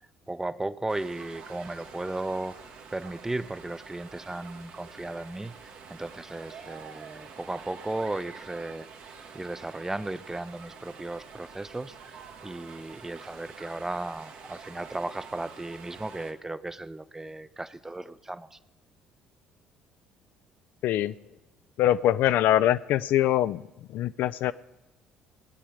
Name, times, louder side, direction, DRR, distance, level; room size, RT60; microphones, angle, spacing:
voice 1, 0.3-2.6 2.9-8.9 9.3-12.2 12.4-18.6, right 2 dB, 15° right, 14 dB, 0.6 m, -35 dB
sound 1, 0.9-16.3, right 6 dB, 65° right, 1.7 m, -47 dB
voice 2, 20.8-21.1 21.8-24.5, left 12 dB, 60° left, 15 dB, 0.3 m, -24 dB
18.0 x 9.8 x 5.0 m, 1.0 s
hypercardioid pair, 50°, 4 cm